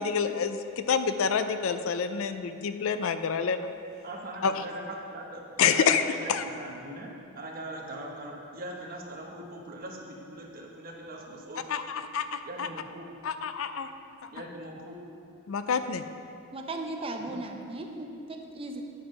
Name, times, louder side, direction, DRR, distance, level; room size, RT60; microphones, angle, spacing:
voice 1, 0.0-3.7 4.4-4.6 5.6-6.0 6.3-6.4 11.7-12.7 13.2-13.9 14.2-14.3 15.5-16.0, left 6 dB, 65° left, 10 dB, 0.4 m, -27 dB
voice 2, 4.0-11.6 12.4-13.1 14.3-15.0 17.2-17.4, right 1 dB, 40° right, -1 dB, 1.1 m, -41 dB
voice 3, 16.5-18.8, right 2 dB, 25° right, 3 dB, 0.6 m, -37 dB
9.5 x 5.5 x 5.3 m, 2.5 s
head